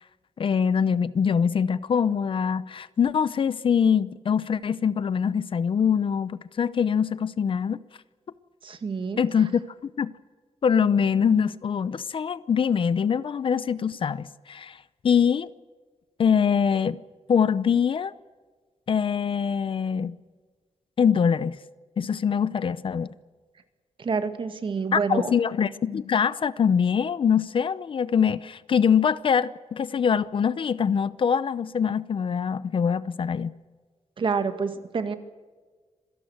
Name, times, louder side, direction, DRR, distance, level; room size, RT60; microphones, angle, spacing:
voice 1, 0.4-7.8 9.2-10.1 10.6-14.8 15.0-15.5 16.2-17.0 17.3-18.1 18.9-20.2 21.0-21.6 22.0-23.1 24.9-33.5, left 7 dB, 50° left, 0.7 m, -23 dB
voice 2, 8.6-9.2 24.0-25.3 34.2-35.1, right 5 dB, 45° right, 2.0 m, -28 dB
26.5 x 18.0 x 8.0 m
wide cardioid pair, 180°, 12 cm